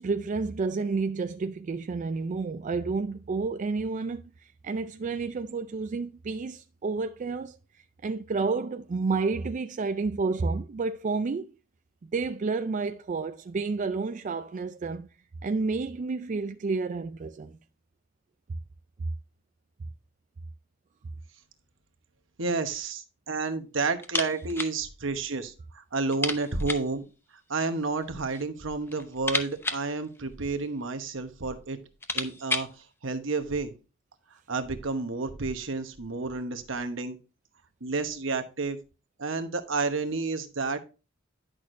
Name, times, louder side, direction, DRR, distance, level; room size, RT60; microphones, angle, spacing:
voice 1, 0.0-7.6 8.0-11.5 12.1-15.1 15.4-17.6, right 4 dB, 40° right, 0.4 m, -30 dB
voice 2, 22.4-27.0 27.5-31.8 32.1-33.7 34.5-37.2 37.8-38.8 39.2-40.8, right 3 dB, 65° right, 1.1 m, -30 dB
sound 1, 24.0-24.8 25.0-25.1 25.5-25.6 26.1-27.0 27.9-28.5 28.8-30.8 31.5-31.6 31.8-32.8, left 2 dB, 10° left, 0.8 m, -33 dB
10.5 x 6.3 x 2.6 m
head